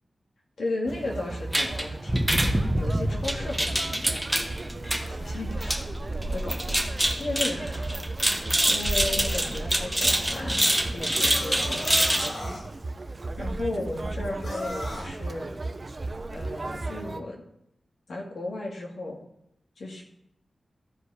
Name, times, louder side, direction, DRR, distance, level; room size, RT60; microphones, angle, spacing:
voice 1, 0.6-2.5 2.7-4.2 5.0-5.9 6.3-6.8 7.2-8.0 8.6-12.0 13.4-15.5 16.3-17.4 18.1-19.2 19.8-20.0, left 2 dB, 80° left, -2 dB, 2.3 m, -35 dB
Conversation, 0.9-17.2, right 2 dB, 40° right, 0.7 m, -35 dB
sound 1, 1.5-12.3, right 1 dB, 5° right, 1.1 m, -26 dB
sound 2, 11.1-12.6 14.4-15.1, left 1 dB, 65° left, 2.7 m, -36 dB
14.0 x 5.2 x 4.9 m, 0.78 s
wide cardioid pair, 80°, 0 cm